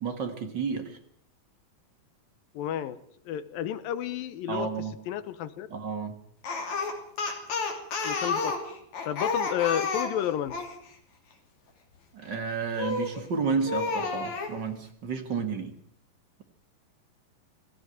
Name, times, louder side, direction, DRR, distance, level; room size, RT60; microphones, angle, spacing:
voice 1, 0.0-1.0 4.5-5.0 5.7-6.2 12.1-15.8, right 5 dB, 40° right, 7 dB, 1.8 m, -31 dB
voice 2, 2.5-3.0 3.3-4.7 5.1-5.7 8.0-8.6 9.1-10.6, left 11 dB, 80° left, 13 dB, 2.8 m, -31 dB
Speech, 6.4-10.7 12.8-13.2 13.7-14.5, left 4 dB, 55° left, 4.1 m, -30 dB
19.5 x 14.5 x 9.2 m, 0.67 s
omnidirectional pair, 4.1 m